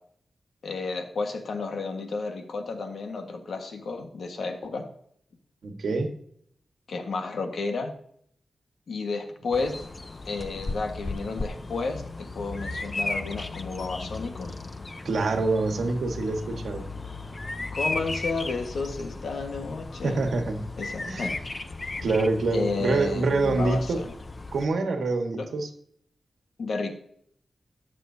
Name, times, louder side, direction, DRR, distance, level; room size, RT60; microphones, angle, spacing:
voice 1, 0.6-4.9 6.9-7.9 8.9-9.8 10.2-14.6 17.7-20.2 20.8-21.4 22.5-24.1 25.3-25.5 26.6-26.9, left 3 dB, 75° left, 4 dB, 1.5 m, -32 dB
voice 2, 5.6-6.1 15.0-16.9 20.0-20.6 21.1-21.3 22.0-24.0 24.5-25.7, right 3 dB, 85° right, 4 dB, 1.5 m, -26 dB
Bird vocalization bird call bird song, 9.5-24.7, left 2 dB, 30° left, 0.6 m, -36 dB
18.0 x 7.3 x 2.8 m, 0.66 s
wide cardioid pair, 140°, 0 cm